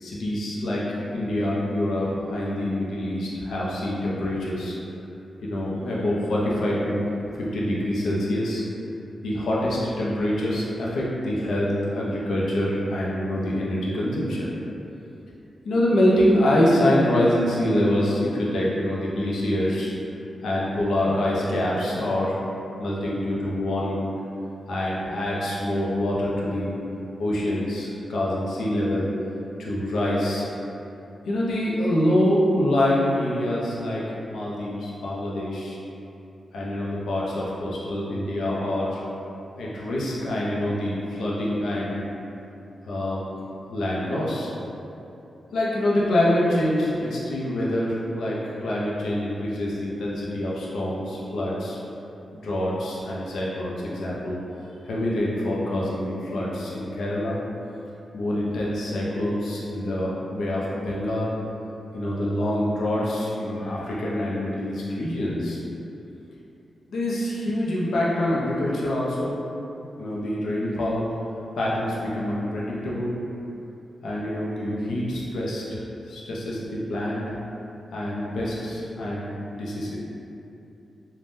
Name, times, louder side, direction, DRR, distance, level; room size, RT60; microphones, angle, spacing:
voice 1, 0.0-4.7 5.4-7.1 7.4-8.7 9.2-14.5 15.6-19.9 20.4-22.4 22.8-24.1 24.7-26.8 27.2-29.1 29.6-30.5 31.2-35.8 36.5-39.0 39.6-42.0 42.9-43.2 43.7-44.5 45.5-51.8 52.3-54.4 54.8-57.4 58.1-61.3 61.9-65.6 66.9-69.4 69.8-71.1 71.6-73.2 74.0-75.8 76.1-77.2 77.9-80.0, left 1 dB, 80° left, -5 dB, 0.4 m, -25 dB
3.4 x 2.1 x 2.6 m, 2.8 s
wide cardioid pair, 140°, 0 cm